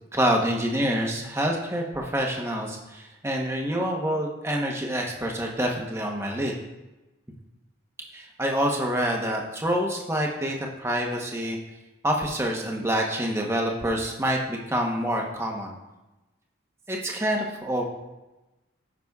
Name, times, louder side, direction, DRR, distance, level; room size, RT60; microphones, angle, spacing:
voice 1, 0.1-6.5 8.1-11.6 12.0-15.7 16.9-17.8, equal, 15° right, 0 dB, 0.9 m, -27 dB
14.5 x 6.0 x 2.3 m, 1.1 s
head